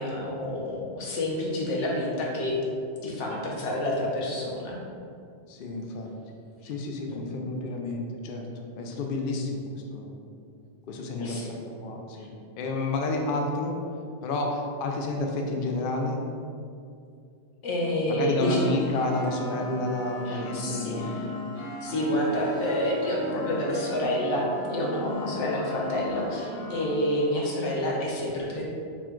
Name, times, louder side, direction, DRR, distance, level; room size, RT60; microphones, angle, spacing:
voice 1, 0.0-2.6 3.0-4.8 7.1-7.2 11.2-11.5 12.2-12.3 17.6-18.7 20.3-21.3 21.8-28.6, left 1 dB, 85° left, -3 dB, 1.2 m, -28 dB
voice 2, 5.5-6.1 6.6-8.5 8.8-10.1 10.9-12.3 12.6-13.8 14.2-16.2 18.1-21.2, left 2 dB, 60° left, 1 dB, 0.6 m, -30 dB
sound 1, 18.4-27.2, left 1 dB, 20° left, 1.2 m, -37 dB
4.3 x 2.3 x 4.4 m, 2.4 s
omnidirectional pair, 1.2 m